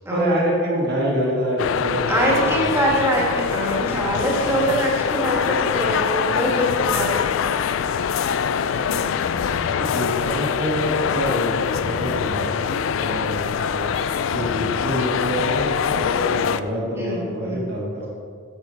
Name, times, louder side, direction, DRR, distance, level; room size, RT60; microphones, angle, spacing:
voice 1, 0.1-2.8 6.9-7.0 8.9-9.0 9.6-13.4 13.7-13.8 14.3-18.1, equal, 50° right, -3 dB, 1.6 m, -26 dB
sound 1, 1.6-16.6, left 7 dB, 60° left, 0.3 m, -23 dB
voice 2, 2.1-7.6 8.7-9.4 17.0-17.7, right 1 dB, 10° right, -4 dB, 1.5 m, -24 dB
7.0 x 6.9 x 4.5 m, 2.1 s
head